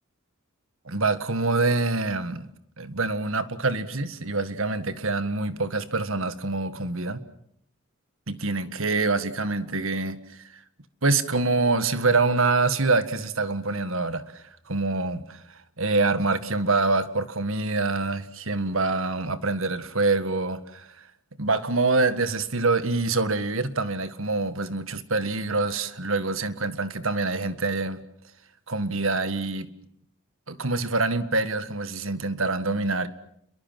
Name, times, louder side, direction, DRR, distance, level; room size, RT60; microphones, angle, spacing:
voice 1, 0.8-2.5 2.8-7.2 8.3-10.2 11.0-15.4 15.8-20.9 21.4-28.0 28.7-29.7 30.5-33.1, right 3 dB, 65° right, 1.7 m, -25 dB
29.5 x 23.0 x 7.6 m
head